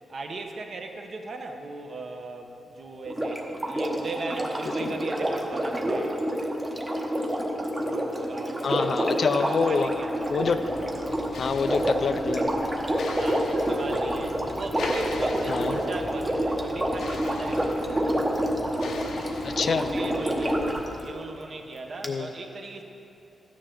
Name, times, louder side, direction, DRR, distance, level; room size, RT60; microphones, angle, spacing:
voice 1, 0.1-6.3 7.7-10.1 13.1-17.7 19.5-22.8, right 3 dB, 45° right, 4 dB, 0.9 m, -38 dB
Sink (filling or washing), 3.1-20.9 22.0-22.1, right 1 dB, 15° right, 0.9 m, -28 dB
voice 2, 8.6-9.9 10.3-11.0 11.4-12.5 15.5-15.8 19.4-19.9 22.0-22.3, left 5 dB, 50° left, 9 dB, 0.4 m, -26 dB
sound 1, 9.6-21.1, left 4 dB, 80° left, 0.8 m, -40 dB
14.0 x 9.4 x 3.8 m, 2.9 s
wide cardioid pair, 155°, 0 cm